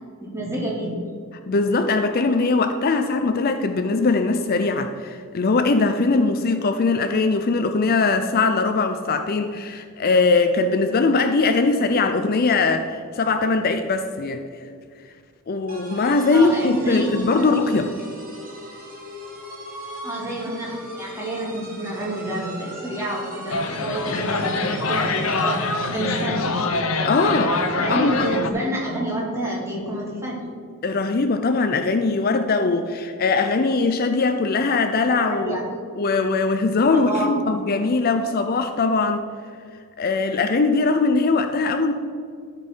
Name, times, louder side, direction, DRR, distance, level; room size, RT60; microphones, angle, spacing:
voice 1, 0.3-1.0 16.3-17.8 20.0-26.5 27.8-30.4 35.3-35.6 36.9-37.3, right 1 dB, 15° right, -4 dB, 2.4 m, -29 dB
voice 2, 1.5-14.4 15.5-17.9 27.0-27.6 27.9-28.3 30.8-35.6 36.0-39.3 40.0-41.9, left 3 dB, 45° left, 7 dB, 0.5 m, -21 dB
sound 1, 15.7-26.4, right 1 dB, 45° right, 2.2 m, -39 dB
sound 2, 23.5-28.5, left 3 dB, 75° left, 0.8 m, -24 dB
13.5 x 5.3 x 4.5 m, 2.2 s
head